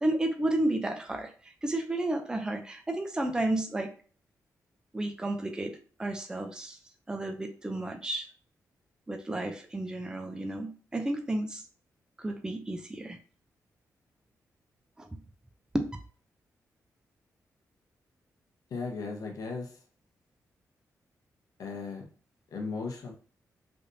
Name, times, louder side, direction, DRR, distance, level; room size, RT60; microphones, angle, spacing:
voice 1, 0.0-3.9 4.9-6.8 7.1-8.3 9.1-11.6 12.2-13.2 15.0-15.1 15.7-15.9, right 1 dB, 10° right, 5 dB, 0.4 m, -32 dB
voice 2, 18.7-19.8 21.6-22.0 22.5-23.1, left 4 dB, 75° left, 1 dB, 0.8 m, -36 dB
3.4 x 2.6 x 2.6 m, 0.41 s
cardioid pair, 95°, 6 cm